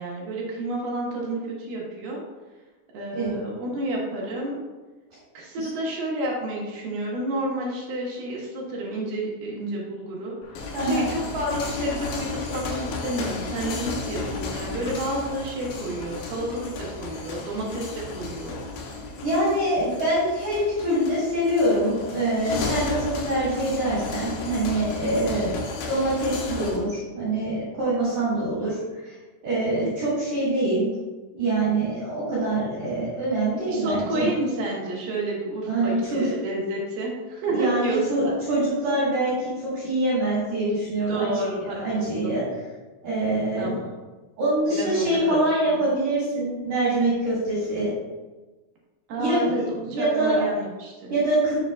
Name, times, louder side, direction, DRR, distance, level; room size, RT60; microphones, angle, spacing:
voice 1, 0.0-2.2 2.9-4.6 5.3-18.6 33.7-38.3 41.1-42.4 43.6-43.9 44.7-45.2 45.5-45.8 49.1-51.1, right 1 dB, 70° right, -3 dB, 3.0 m, -30 dB
sound 1, 10.4-26.8, left 3 dB, 70° left, 2.7 m, -33 dB
voice 2, 10.7-11.1 19.2-25.6 25.9-29.1 29.4-30.9 31.3-34.3 35.7-36.3 37.5-41.3 41.6-42.4 43.0-43.7 44.4-47.9 49.2-50.4 51.1-51.5, right 1 dB, 50° right, -9 dB, 3.2 m, -24 dB
9.9 x 6.4 x 2.3 m, 1.2 s
omnidirectional pair, 5.0 m